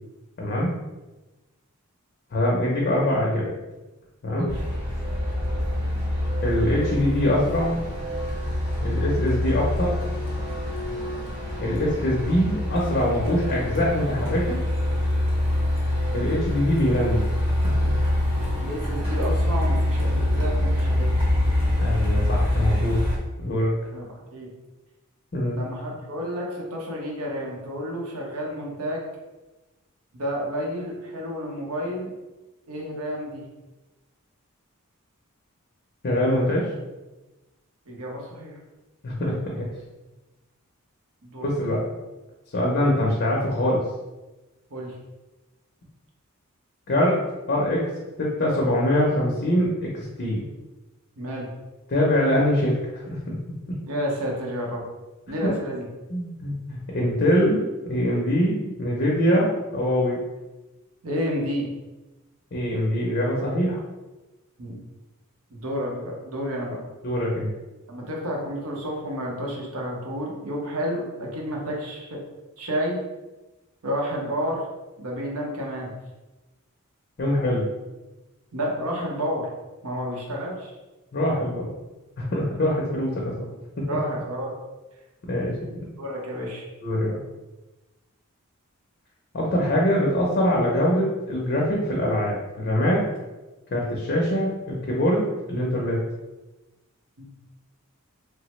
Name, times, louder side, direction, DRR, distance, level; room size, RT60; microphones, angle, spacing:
voice 1, 0.4-0.7 2.3-3.5 4.2-4.5 6.4-7.8 8.8-9.9 11.6-14.6 16.1-17.2 21.8-23.0 23.4-23.7 25.3-25.6 36.0-36.7 39.0-39.7 41.4-41.9 42.5-43.8 46.9-47.2 47.5-47.9 48.2-50.4 51.9-53.4 55.4-55.5 56.1-60.2 62.5-63.8 67.0-67.5 77.2-77.7 81.1-81.7 82.2-83.5 83.8-83.9 85.3-85.5 86.8-87.1 89.3-93.0 93.7-96.0, left 1 dB, 45° left, -3 dB, 0.5 m, -23 dB
voice 2, 4.3-4.6 18.6-21.1 23.9-24.5 25.5-29.0 30.1-32.1 32.7-33.4 37.9-38.6 41.2-41.5 44.7-44.9 51.2-51.5 53.9-54.8 55.3-55.8 61.0-61.7 64.6-64.8 65.5-66.8 67.9-72.2 72.6-73.0 73.8-74.6 75.0-75.9 78.5-79.5 79.8-80.7 82.6-82.7 83.9-84.5 86.0-86.6 97.2-97.3, equal, 80° right, -2 dB, 0.8 m, -30 dB
Truck, 4.5-23.2, left 1 dB, 25° right, 0.9 m, -25 dB
3.1 x 2.0 x 3.0 m, 1.1 s
head